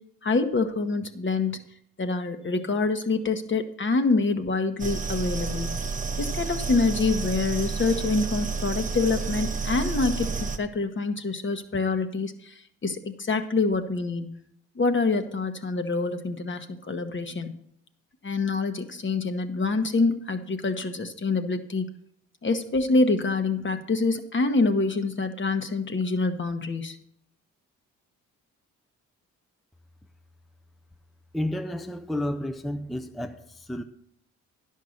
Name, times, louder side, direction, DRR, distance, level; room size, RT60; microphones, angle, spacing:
voice 1, 0.2-1.6 2.0-5.8 6.2-14.4 14.7-17.6 18.2-21.9 22.4-27.0, left 3 dB, 35° left, 1.2 m, -26 dB
sound 1, 4.8-10.6, right 4 dB, 20° right, 1.0 m, -30 dB
voice 2, 31.3-33.8, left 1 dB, ahead, 0.6 m, -31 dB
10.5 x 5.6 x 6.4 m
supercardioid pair, 55°, 34 cm